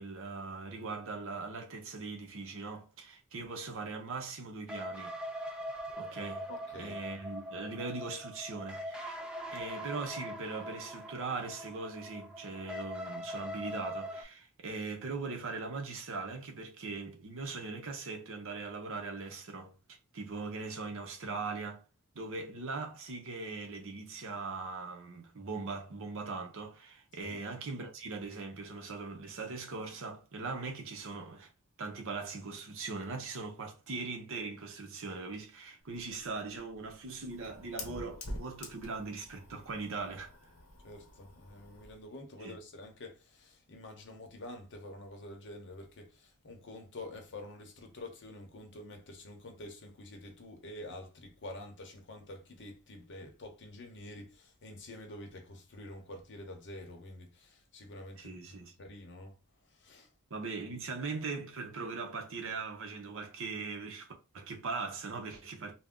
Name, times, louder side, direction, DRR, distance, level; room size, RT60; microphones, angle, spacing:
voice 1, 0.0-5.2 6.0-6.5 6.7-9.2 9.5-19.7 20.1-21.8 22.1-31.5 31.8-40.3 42.4-42.6 58.2-58.7 60.3-64.1 64.3-65.7, right 4 dB, 60° right, 0.7 m, -40 dB
sound 1, 4.7-14.2, equal, 5° right, 0.4 m, -42 dB
voice 2, 6.5-7.0 27.1-27.4 36.1-36.2 40.8-58.3 58.8-59.3 59.7-60.1, left 1 dB, 55° left, 0.8 m, -48 dB
Fire, 35.8-42.0, left 1 dB, 80° left, 0.9 m, -47 dB
2.5 x 2.1 x 3.6 m
head